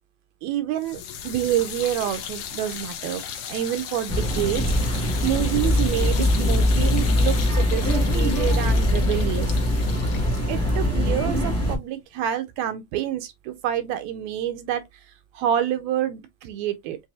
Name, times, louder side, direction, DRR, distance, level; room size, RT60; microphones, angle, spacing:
voice 1, 0.4-3.2 3.5-4.6 4.9-9.6 10.5-14.8 15.3-17.0, right 11 dB, 80° right, 1.7 m, -27 dB
sound 1, 0.8-11.9, left 8 dB, 75° left, 2.2 m, -36 dB
sound 2, 4.1-11.7, left 1 dB, 10° left, 0.8 m, -22 dB
6.0 x 2.6 x 2.6 m
omnidirectional pair, 3.4 m